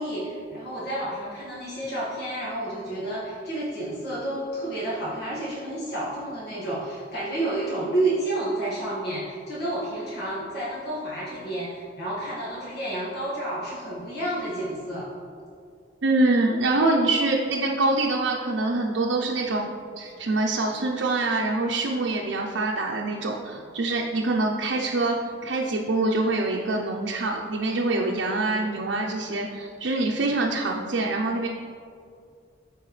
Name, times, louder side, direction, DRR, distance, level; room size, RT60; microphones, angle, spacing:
voice 1, 0.0-15.1, right 1 dB, 60° left, -8 dB, 1.7 m, -30 dB
voice 2, 16.0-19.7 20.0-31.5, right 2 dB, 75° right, -1 dB, 0.6 m, -25 dB
13.0 x 4.6 x 3.2 m, 2.3 s
head